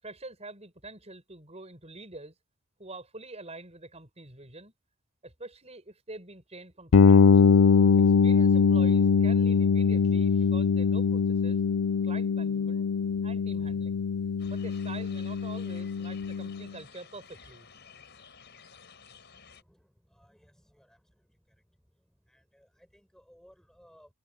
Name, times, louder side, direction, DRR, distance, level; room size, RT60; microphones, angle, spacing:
voice 1, 0.0-2.3 2.8-4.7 5.2-7.2 8.0-11.6 12.0-12.9 13.2-14.0 14.4-17.7, right 2 dB, 30° right, 7.6 m, -46 dB
sound 1, 6.9-16.6, left 5 dB, 85° left, 0.5 m, -22 dB
sound 2, 14.4-19.6, left 6 dB, 50° left, 5.7 m, -53 dB
voice 2, 19.3-21.6 22.2-24.1, equal, ahead, 6.2 m, -61 dB
head